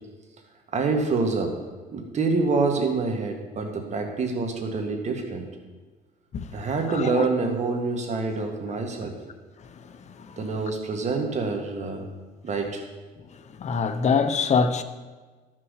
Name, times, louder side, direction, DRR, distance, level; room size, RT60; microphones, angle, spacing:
voice 1, 0.7-1.5 1.9-5.5 6.5-9.1 10.4-12.0 12.4-12.8, right 3 dB, 45° right, 2.0 m, -26 dB
voice 2, 6.9-7.2 10.2-10.4 13.6-14.8, left 5 dB, 45° left, 0.9 m, -24 dB
12.5 x 6.2 x 6.6 m
cardioid pair, 110°, 17 cm